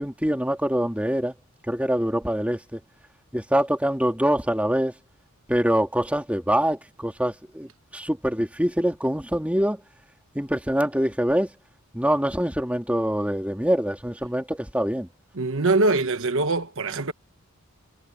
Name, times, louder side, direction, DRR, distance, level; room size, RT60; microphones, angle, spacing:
voice 1, 0.0-1.3 1.7-2.8 3.3-4.9 5.5-9.8 10.3-11.5 11.9-15.1, equal, 5° right, 2.2 m, -24 dB
voice 2, 15.3-17.1, right 2 dB, 60° right, 1.2 m, -23 dB
head